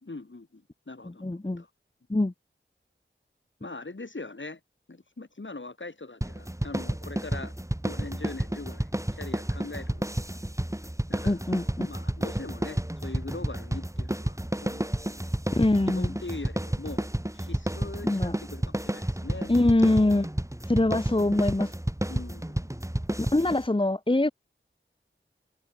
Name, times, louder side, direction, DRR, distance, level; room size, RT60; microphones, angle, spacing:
voice 1, 0.0-1.7 3.6-4.6 4.9-7.5 7.8-10.0 11.1-15.3 15.9-17.1 17.3-19.5 22.1-22.7, left 3 dB, 65° left, 5.0 m, -42 dB
voice 2, 1.0-1.6 2.1-2.3 11.2-11.9 15.6-16.2 18.0-18.4 19.5-20.3 20.7-21.7 23.2-24.3, left 2 dB, 25° left, 1.1 m, -24 dB
sound 1, 6.2-23.7, right 1 dB, 15° right, 3.1 m, -31 dB
wide cardioid pair, 50°, 21 cm